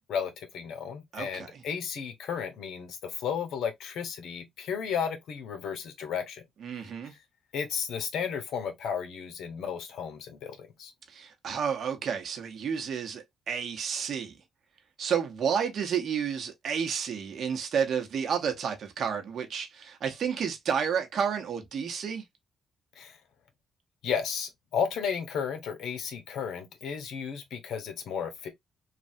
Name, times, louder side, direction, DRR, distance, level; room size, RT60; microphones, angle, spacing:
voice 1, 0.1-6.4 7.5-10.9 23.0-23.2 24.0-28.5, left 7 dB, 75° left, 0.9 m, -33 dB
voice 2, 1.1-1.6 6.6-7.1 11.1-14.4 15.0-22.2, right 7 dB, 60° right, 0.9 m, -31 dB
3.2 x 2.4 x 2.6 m
cardioid pair, 90°, 0 cm